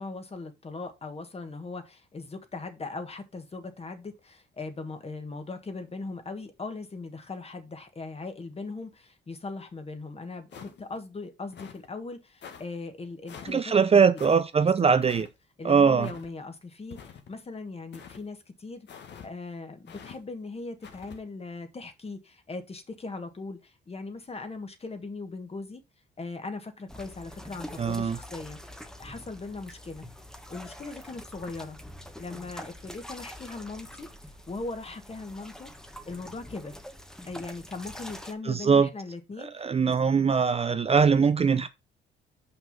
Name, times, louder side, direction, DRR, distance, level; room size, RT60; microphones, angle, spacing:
voice 1, 0.0-14.0 14.6-14.9 15.6-18.9 19.2-25.8 26.2-30.1 30.5-31.8 32.2-35.7 36.1-36.8 37.3-39.8, left 3 dB, 30° left, 1.5 m, -39 dB
sound 1, 10.5-11.0 11.5-11.9 12.4-12.6 13.3-13.6 14.2-14.4 15.0-15.3 16.0-16.3 16.9-17.4 17.9-18.2 18.9-19.3 19.9-20.2 20.8-21.2, left 7 dB, 60° left, 1.5 m, -46 dB
voice 2, 13.4-15.3 15.6-16.1 27.8-28.2 38.5-38.9 39.5-41.7, right 6 dB, 30° right, 0.6 m, -21 dB
sound 2, 26.9-38.3, left 1 dB, 5° left, 1.1 m, -45 dB
5.9 x 5.6 x 5.3 m
cardioid pair, 90°, 20 cm